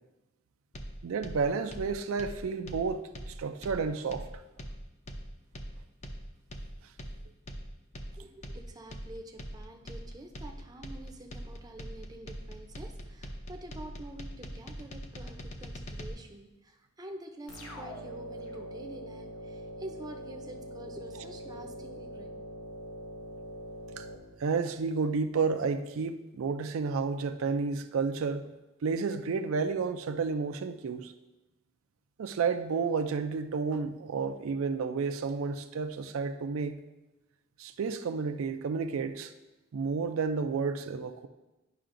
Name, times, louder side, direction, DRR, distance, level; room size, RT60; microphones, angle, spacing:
sound 1, 0.7-16.1, equal, 35° left, 0.6 m, -42 dB
voice 1, 1.0-4.3 24.0-24.1 24.4-28.5 28.8-31.1 32.2-36.8 37.6-39.3 39.7-41.3, right 5 dB, 80° right, 0.4 m, -31 dB
voice 2, 8.2-22.3, right 1 dB, 20° right, 0.5 m, -47 dB
sound 2, 17.5-25.0, equal, 85° left, 1.0 m, -43 dB
10.0 x 5.6 x 2.5 m
head